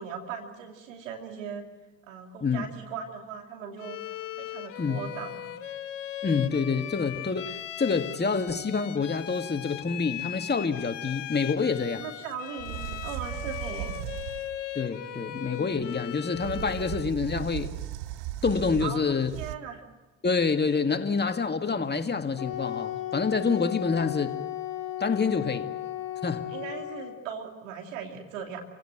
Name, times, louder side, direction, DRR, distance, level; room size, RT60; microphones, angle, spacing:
voice 1, 0.0-1.6 2.1-4.0 4.4-5.5 12.0-14.0 15.1-15.2 18.8-19.8 26.5-28.6, right 7 dB, 85° right, 2.8 m, -38 dB
Bowed string instrument, 3.8-17.2, left 12 dB, 85° left, 1.2 m, -38 dB
voice 2, 6.2-12.1 14.8-17.7 18.4-19.3 20.2-24.4 25.0-25.7 26.2-26.5, left 5 dB, 25° left, 2.0 m, -27 dB
sound 1, 12.3-12.4 12.6-14.6 16.3-19.6, right 14 dB, 70° right, 0.8 m, -36 dB
Wind instrument woodwind instrument, 22.4-27.3, left 14 dB, 65° left, 2.4 m, -35 dB
28.5 x 17.0 x 8.0 m
hypercardioid pair, 55°, 38 cm